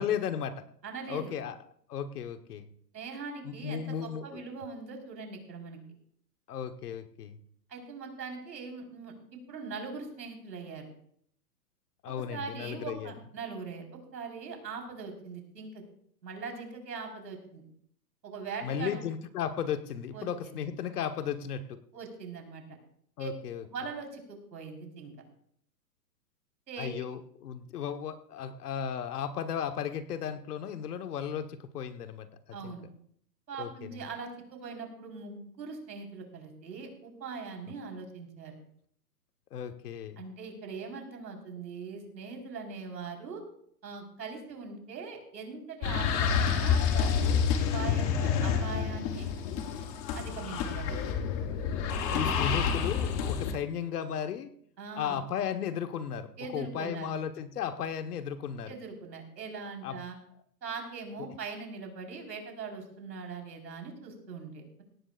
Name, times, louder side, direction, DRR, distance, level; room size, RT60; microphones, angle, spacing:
voice 1, 0.0-0.7 1.1-1.6 1.9-2.7 3.4-4.4 6.5-7.4 12.0-13.1 18.6-21.8 23.2-23.6 26.8-32.7 33.6-34.1 39.5-40.2 48.2-48.3 52.1-54.5 55.0-58.7 59.8-60.0, left 8 dB, 65° left, 8 dB, 1.4 m, -35 dB
voice 2, 0.8-1.3 2.9-5.8 7.7-10.9 12.3-15.8 16.2-17.6 18.2-19.0 20.1-20.5 21.9-22.6 23.2-23.3 23.6-25.1 26.7-27.0 32.5-32.8 33.5-38.6 40.2-43.4 43.8-47.4 47.7-49.3 50.1-51.0 54.8-55.2 56.4-57.1 58.7-60.2 60.6-64.8, right 5 dB, 90° right, 2 dB, 4.5 m, -41 dB
sound 1, 45.8-53.5, left 7 dB, 15° left, 0.7 m, -28 dB
17.5 x 16.0 x 2.5 m, 0.65 s
hypercardioid pair, 155°, 49 cm